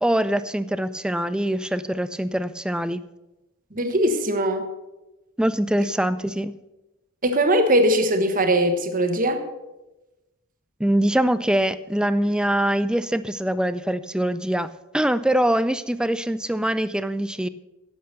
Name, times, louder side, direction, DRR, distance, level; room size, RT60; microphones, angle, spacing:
voice 1, 0.0-3.0 5.4-6.6 10.8-17.5, right 1 dB, 5° right, 14 dB, 0.3 m, -23 dB
voice 2, 3.7-4.7 7.2-9.4, right 1 dB, 40° right, 7 dB, 1.3 m, -20 dB
10.5 x 8.0 x 6.7 m, 1.0 s
head